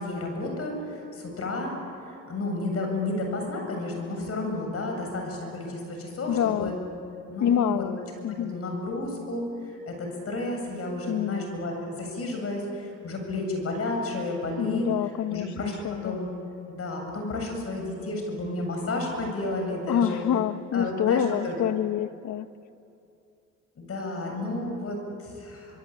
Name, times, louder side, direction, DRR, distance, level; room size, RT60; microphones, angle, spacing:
voice 1, 0.0-1.7 2.1-6.7 7.3-7.8 8.5-14.9 15.3-16.3 16.7-20.2 20.7-21.6 23.8-25.8, left 2 dB, 50° left, 2 dB, 7.6 m, -31 dB
voice 2, 6.3-6.7 7.4-8.5 11.1-11.4 14.6-16.2 19.9-22.5, left 10 dB, 70° left, 12 dB, 1.1 m, -27 dB
25.0 x 23.0 x 8.7 m, 2.6 s
cardioid pair, 90°, 30 cm